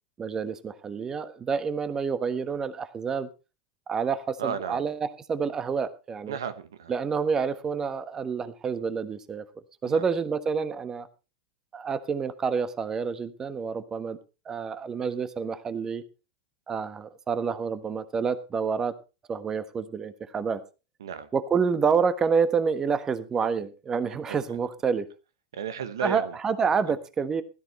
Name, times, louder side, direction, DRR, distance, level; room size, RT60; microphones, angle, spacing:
voice 1, 0.2-3.3 3.9-6.4 6.9-9.4 9.8-11.1 11.7-14.2 14.4-16.0 16.7-18.9 19.3-20.6 21.3-25.1 26.0-27.4, right 6 dB, 25° right, 1.3 m, -28 dB
voice 2, 4.4-4.8 6.3-6.9 9.8-10.1 21.0-21.3 24.1-24.4 25.5-26.4, right 7 dB, 75° right, 1.1 m, -34 dB
16.0 x 13.5 x 3.2 m
hypercardioid pair, 95°, 2 cm